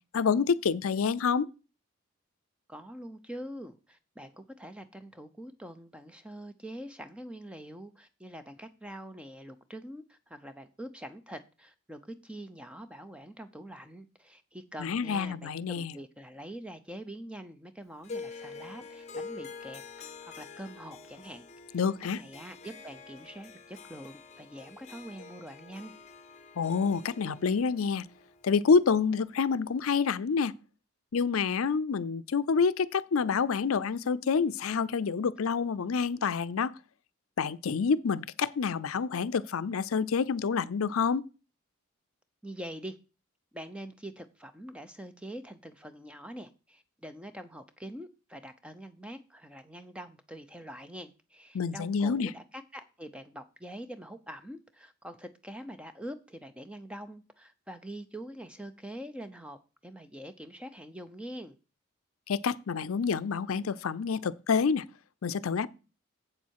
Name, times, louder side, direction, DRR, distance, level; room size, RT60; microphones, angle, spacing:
voice 1, 0.1-1.5 14.8-15.9 21.7-22.2 26.6-28.1 28.4-30.5 31.1-36.7 37.4-41.2 51.5-52.3 62.3-64.9 65.2-65.7, left 5 dB, 85° left, 0.5 m, -28 dB
voice 2, 2.7-21.8 22.1-25.9 42.4-43.0 43.5-59.6 59.8-61.6, right 1 dB, 5° right, 0.6 m, -44 dB
Harp, 18.0-29.3, left 4 dB, 35° left, 0.7 m, -46 dB
7.8 x 7.2 x 4.7 m
head